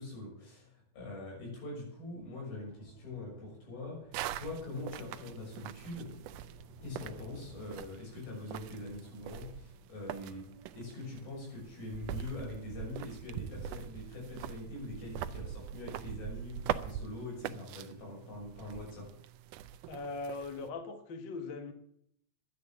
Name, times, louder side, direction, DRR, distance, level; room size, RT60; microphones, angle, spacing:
voice 1, 0.0-6.1 6.8-10.5 10.7-19.1, left 2 dB, 85° left, 8.3 m, -43 dB
Thunder / Rain, 1.8-18.3 18.6-19.1 19.3-19.5, left 3 dB, 30° left, 2.2 m, -60 dB
sound 1, 4.1-20.7, right 10 dB, 80° right, 1.9 m, -43 dB
voice 2, 19.9-21.7, left 3 dB, 50° left, 1.4 m, -40 dB
12.0 x 9.8 x 7.2 m
omnidirectional pair, 4.2 m